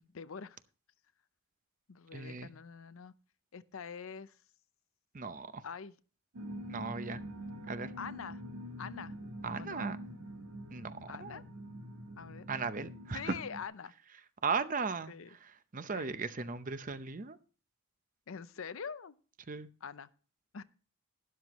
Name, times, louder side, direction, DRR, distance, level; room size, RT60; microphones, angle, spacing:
voice 1, 0.1-0.6 1.9-3.1 3.5-4.4 5.6-5.9 8.0-8.4 8.8-9.1 9.6-9.9 11.1-11.4 12.2-12.5 13.1-13.9 15.1-15.3 15.9-16.1 18.3-19.1 19.8-20.1 20.5-20.6, left 6 dB, 70° left, 0.6 m, -44 dB
voice 2, 2.1-2.5 5.1-5.6 6.7-7.2 7.6-7.9 9.4-10.0 10.7-11.4 12.5-13.4 14.4-17.4 19.5-19.7, right 4 dB, 35° right, 0.7 m, -37 dB
sound 1, 6.3-13.6, equal, 85° right, 1.5 m, -45 dB
12.5 x 11.0 x 3.0 m
head